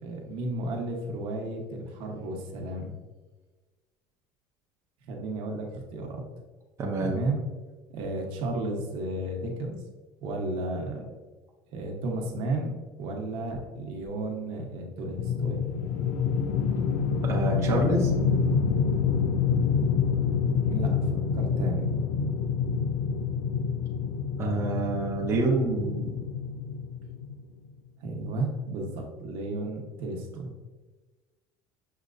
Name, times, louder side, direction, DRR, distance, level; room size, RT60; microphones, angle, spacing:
voice 1, 0.0-2.9 5.0-6.2 7.0-7.4 7.9-9.8 10.2-11.1 11.7-15.6 20.3-21.9 28.0-30.5, right 2 dB, 60° right, 1 dB, 0.9 m, -33 dB
voice 2, 6.8-7.1 17.2-18.1 24.4-26.1, right 2 dB, 25° right, -2 dB, 0.7 m, -27 dB
sound 1, 15.2-27.4, left 6 dB, 70° left, 0.4 m, -27 dB
6.4 x 2.9 x 2.5 m, 1.3 s
cardioid pair, 155°, 11 cm